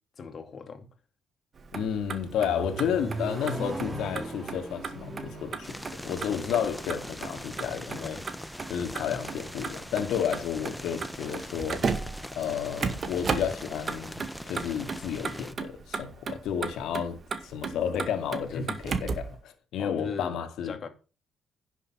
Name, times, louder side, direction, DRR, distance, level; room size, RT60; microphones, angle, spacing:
voice 1, 0.2-0.9 18.5-18.8 19.8-20.4 20.6-20.9, left 4 dB, 50° left, 2.5 m, -37 dB
Motor vehicle (road), 1.6-19.4, right 5 dB, 45° right, 1.9 m, -36 dB
voice 2, 1.7-8.2 8.7-11.8 12.4-17.2 17.4-20.9, left 8 dB, 80° left, 2.1 m, -31 dB
Accelerating revving vroom, 1.8-7.8, right 2 dB, 25° right, 3.3 m, -39 dB
sound 1, 5.6-15.5, equal, 5° left, 1.0 m, -41 dB
10.5 x 7.1 x 5.8 m
cardioid pair, 90°, 0 cm